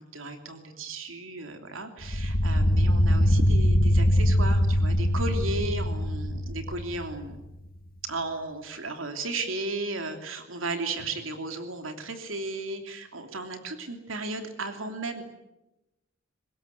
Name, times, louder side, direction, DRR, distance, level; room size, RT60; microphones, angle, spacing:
voice 1, 0.0-7.4 8.0-15.2, right 2 dB, 85° right, 6 dB, 3.0 m, -35 dB
sound 1, 2.0-7.3, equal, 50° left, 1.8 m, -23 dB
25.0 x 20.5 x 9.5 m, 0.95 s
head